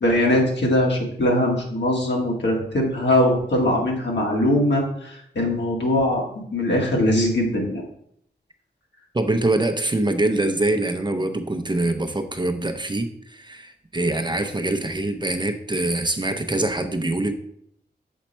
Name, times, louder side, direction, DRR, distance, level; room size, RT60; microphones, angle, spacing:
voice 1, 0.0-6.2 6.5-7.8, left 1 dB, 70° left, -1 dB, 1.8 m, -21 dB
voice 2, 9.1-17.3, right 2 dB, 25° right, 6 dB, 0.7 m, -24 dB
7.3 x 4.1 x 4.3 m, 0.70 s
cardioid pair, 55°, 19 cm